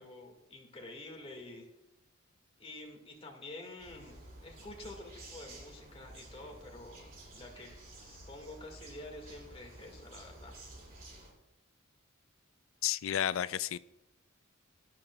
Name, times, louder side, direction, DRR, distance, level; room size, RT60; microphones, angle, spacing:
voice 1, 0.0-1.6 2.6-7.7 8.0-10.6, left 2 dB, 30° left, 1.8 m, -48 dB
sound 1, 3.8-11.3, right 1 dB, 40° right, 2.5 m, -52 dB
voice 2, 12.8-13.8, left 10 dB, 65° left, 0.4 m, -31 dB
17.0 x 10.5 x 2.3 m
head